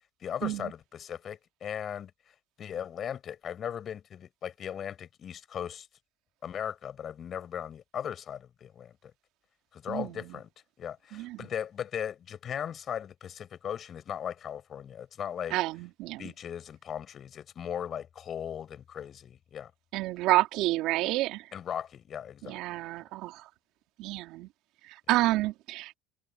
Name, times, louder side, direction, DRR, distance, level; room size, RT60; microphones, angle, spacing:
voice 1, 0.2-2.1 2.6-5.9 6.4-9.1 9.7-10.5 10.8-15.6 16.2-19.7 21.5-22.6, left 9 dB, 45° left, 6.9 m, -38 dB
voice 2, 11.1-11.5 15.5-16.2 19.9-21.5 22.4-23.4 24.0-24.5 24.9-25.9, right 17 dB, 65° right, 2.4 m, -29 dB
hypercardioid pair, 75°, 0 cm